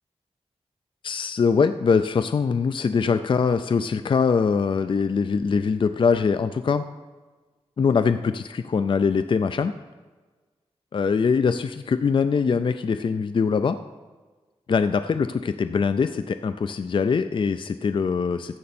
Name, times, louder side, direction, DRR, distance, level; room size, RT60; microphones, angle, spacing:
voice 1, 1.0-6.8 7.8-9.7 10.9-13.8 14.7-18.6, left 5 dB, 50° left, 10 dB, 0.4 m, -22 dB
14.0 x 7.8 x 4.2 m, 1.3 s
wide cardioid pair, 120°, 11 cm